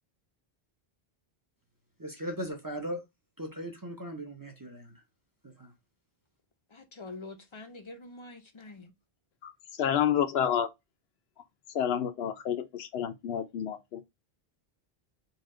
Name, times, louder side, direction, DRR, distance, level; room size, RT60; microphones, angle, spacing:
voice 1, 2.0-3.0 3.4-5.0 5.4-5.7, equal, 25° right, 0.6 m, -38 dB
voice 2, 6.7-8.9, left 2 dB, 40° left, 0.5 m, -45 dB
voice 3, 9.8-10.7 11.7-14.0, left 9 dB, 80° left, 0.8 m, -29 dB
4.2 x 2.4 x 3.6 m
omnidirectional pair, 1.0 m